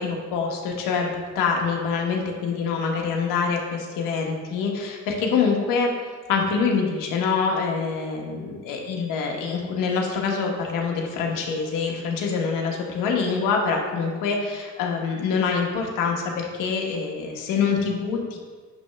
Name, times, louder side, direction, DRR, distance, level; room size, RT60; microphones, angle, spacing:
voice 1, 0.0-5.9 6.3-18.4, left 5 dB, 90° left, 1 dB, 1.3 m, -25 dB
9.6 x 3.3 x 5.8 m, 1.5 s
cardioid pair, 100°, 31 cm